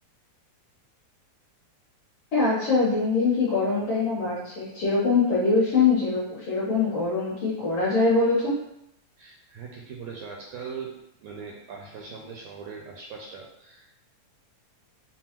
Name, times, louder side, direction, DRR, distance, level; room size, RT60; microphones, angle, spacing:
voice 1, 2.3-8.5, left 4 dB, 70° left, -7 dB, 1.6 m, -23 dB
voice 2, 9.2-13.9, right 5 dB, 80° right, -1 dB, 1.6 m, -40 dB
5.5 x 2.2 x 2.9 m, 0.81 s
omnidirectional pair, 3.4 m